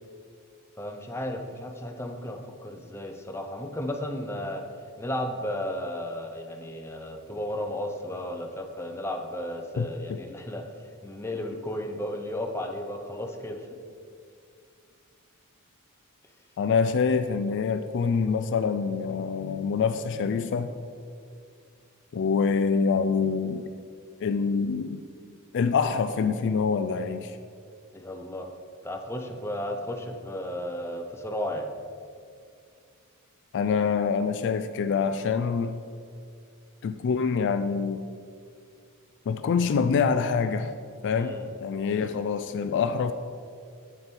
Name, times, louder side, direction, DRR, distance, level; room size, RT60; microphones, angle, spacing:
voice 1, 0.8-4.6 5.0-10.6 11.0-13.7 27.9-28.5 28.8-31.7 41.1-41.5 41.9-42.2, left 1 dB, 10° left, 3 dB, 0.7 m, -34 dB
voice 2, 9.8-10.2 16.6-20.7 22.1-23.7 24.2-25.0 25.5-27.4 33.5-35.7 36.8-38.0 39.3-40.7 41.0-43.1, left 5 dB, 55° left, 9 dB, 0.3 m, -25 dB
8.3 x 6.6 x 4.5 m, 2.2 s
head